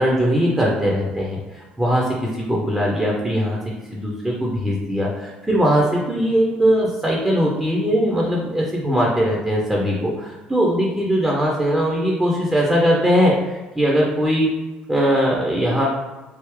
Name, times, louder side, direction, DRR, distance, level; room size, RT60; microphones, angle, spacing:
voice 1, 0.0-3.6 3.9-14.5 14.9-15.9, equal, 10° right, -3 dB, 0.8 m, -20 dB
3.4 x 2.9 x 3.2 m, 1.2 s
figure-of-eight pair, 55°, 5 cm